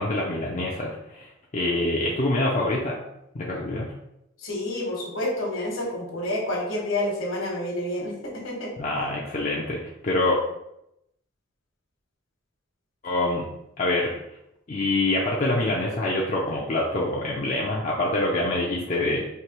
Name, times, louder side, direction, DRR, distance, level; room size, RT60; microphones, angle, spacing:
voice 1, 0.0-3.0 3.3-3.9 8.8-10.4 13.0-13.4 13.8-14.2 14.7-19.2, left 2 dB, 35° left, -3 dB, 0.5 m, -25 dB
voice 2, 4.4-8.7, left 1 dB, 70° left, -1 dB, 1.2 m, -29 dB
4.6 x 2.8 x 3.0 m, 0.83 s
head